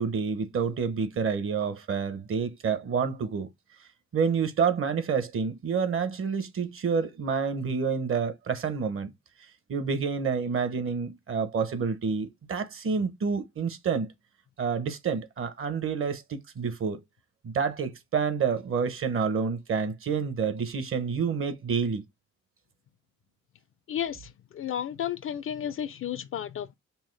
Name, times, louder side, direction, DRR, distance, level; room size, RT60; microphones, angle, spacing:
voice 1, 0.0-3.5 4.1-9.1 9.7-14.1 14.6-17.0 17.4-22.0, right 6 dB, 45° right, 0.8 m, -28 dB
voice 2, 23.9-26.7, left 9 dB, 45° left, 0.4 m, -33 dB
5.5 x 2.0 x 3.1 m
cardioid pair, 90°, 30 cm